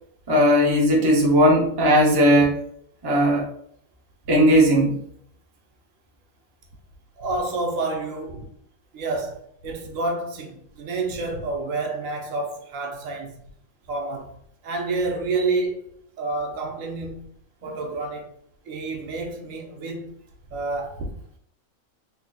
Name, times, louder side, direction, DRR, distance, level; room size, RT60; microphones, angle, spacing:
voice 1, 0.3-2.5 3.0-3.4 4.3-5.0, equal, 25° right, 0.5 m, -17 dB
voice 2, 7.2-8.5 8.9-13.4 13.9-14.4 14.6-15.8 16.2-17.3 17.6-18.3 18.6-20.1 20.5-21.1, right 3 dB, 70° right, 1.0 m, -29 dB
3.8 x 3.2 x 2.2 m
omnidirectional pair, 1.4 m